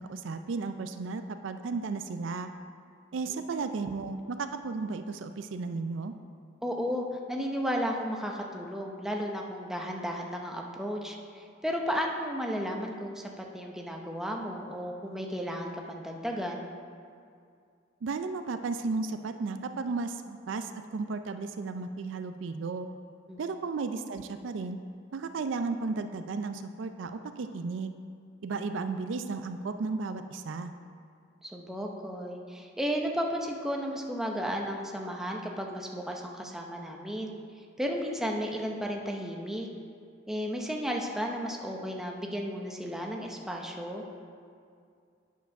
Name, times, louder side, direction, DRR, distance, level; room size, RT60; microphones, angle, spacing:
voice 1, 0.0-2.5 3.1-6.1 18.0-22.9 23.4-24.8 25.1-27.9 28.4-30.7, right 4 dB, 70° right, 9 dB, 0.4 m, -34 dB
voice 2, 6.6-16.6 23.3-23.4 31.4-37.3 37.8-39.7 40.3-44.0, equal, ahead, 1 dB, 0.7 m, -34 dB
9.2 x 4.6 x 5.8 m, 2.3 s
head